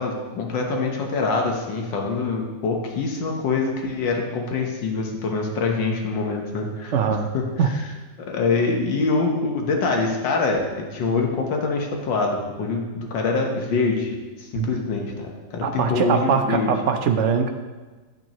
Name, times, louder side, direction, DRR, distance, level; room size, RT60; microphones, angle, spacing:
voice 1, 0.0-6.9 7.3-7.4 8.2-14.1 14.4-16.7, left 4 dB, 85° left, 1 dB, 1.8 m, -24 dB
voice 2, 6.9-7.3 7.6-7.7 14.5-14.7 15.6-17.5, right 6 dB, 65° right, 5 dB, 0.7 m, -21 dB
8.9 x 8.8 x 3.0 m, 1.3 s
omnidirectional pair, 1.9 m